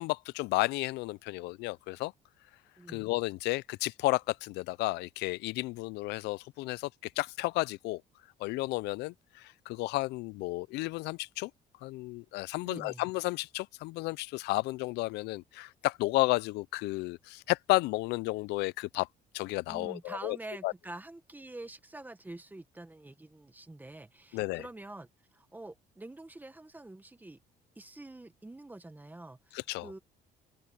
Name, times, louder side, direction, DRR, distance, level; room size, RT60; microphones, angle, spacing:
voice 1, 0.0-2.1 2.9-8.0 8.4-11.5 11.8-19.1 19.3-20.4 20.6-20.7 24.3-24.6 29.5-29.9, left 21 dB, 85° left, 0.4 m, -32 dB
voice 2, 12.6-13.1 19.7-27.4 27.7-30.0, right 2 dB, 10° right, 1.5 m, -46 dB
open air
cardioid pair, 110°, 17 cm